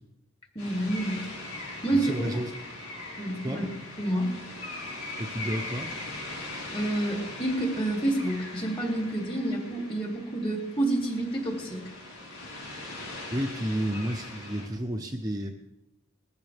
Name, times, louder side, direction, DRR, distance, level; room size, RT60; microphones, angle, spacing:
voice 1, 0.5-1.2 1.8-2.3 3.2-3.7 4.0-4.3 6.7-11.8, right 1 dB, 25° left, 0 dB, 3.1 m, -28 dB
sound 1, 0.6-14.7, left 2 dB, 80° left, 7.1 m, -40 dB
voice 2, 1.9-2.5 3.4-3.6 5.2-6.0 13.3-15.5, equal, 15° right, 0 dB, 0.9 m, -31 dB
20.5 x 14.0 x 3.6 m, 0.93 s
head